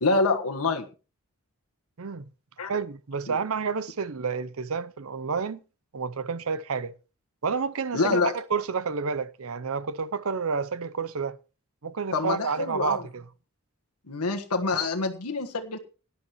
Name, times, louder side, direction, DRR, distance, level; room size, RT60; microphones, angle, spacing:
voice 1, 0.0-0.9 2.6-2.7 3.3-3.4 7.9-8.3 12.1-13.0 14.1-15.8, left 3 dB, 85° left, 1.5 m, -26 dB
voice 2, 2.0-2.3 2.6-5.6 5.9-6.9 7.4-11.4 11.8-13.2, right 5 dB, 65° right, 0.6 m, -30 dB
18.0 x 11.0 x 3.1 m
head